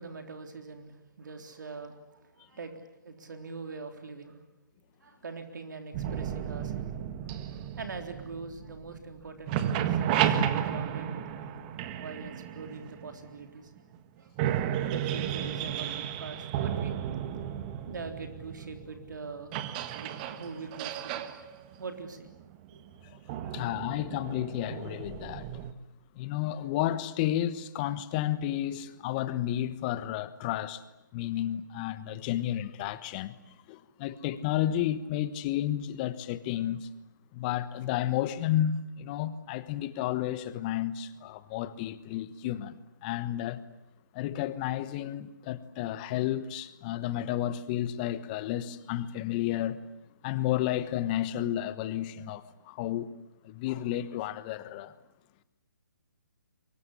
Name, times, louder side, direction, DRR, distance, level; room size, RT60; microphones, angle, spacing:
voice 1, 0.0-4.5 5.0-6.9 7.2-11.2 11.9-13.7 14.2-14.5 14.8-17.0 17.4-19.5 19.9-21.3 21.8-22.3 22.7-22.8 23.3-23.7, right 4 dB, 70° right, 3.7 m, -43 dB
sound 1, 5.9-9.1 9.4-13.3 13.9-14.0 14.4-25.7, right 10 dB, 25° right, 1.6 m, -33 dB
voice 2, 23.5-25.5 26.2-30.8 31.1-33.3 33.7-36.9 37.3-43.6 44.1-49.8 50.2-53.1 53.4-54.9, left 12 dB, 25° left, 1.2 m, -32 dB
24.0 x 21.5 x 9.9 m
hypercardioid pair, 150°, 11 cm